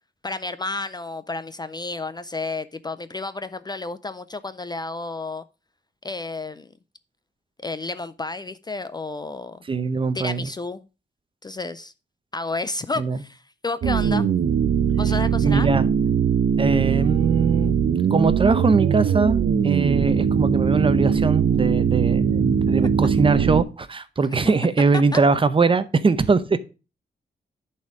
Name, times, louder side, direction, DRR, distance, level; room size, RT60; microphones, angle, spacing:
voice 1, 0.2-5.4 6.0-6.7 7.6-9.6 10.1-10.8 11.4-11.9 12.3-14.3 15.0-15.7 25.1-25.2, left 3 dB, 25° left, 0.4 m, -31 dB
voice 2, 9.7-10.5 13.0-13.2 15.4-15.9 16.6-17.7 18.1-19.4 19.6-26.6, right 4 dB, 30° right, 0.7 m, -21 dB
sound 1, 13.8-23.6, right 7 dB, 65° right, 0.7 m, -21 dB
10.5 x 4.3 x 4.8 m
wide cardioid pair, 120°, 18 cm